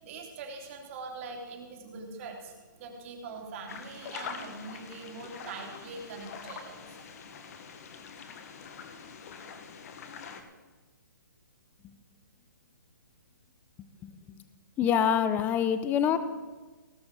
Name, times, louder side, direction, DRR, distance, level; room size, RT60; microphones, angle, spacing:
voice 1, 0.0-7.1, right 4 dB, 40° right, 1 dB, 3.1 m, -43 dB
sound 1, 3.7-10.4, left 6 dB, 50° left, 1.6 m, -44 dB
voice 2, 14.8-16.2, left 8 dB, 15° left, 12 dB, 0.7 m, -25 dB
18.0 x 6.4 x 7.3 m, 1.3 s
hypercardioid pair, 145°, 11 cm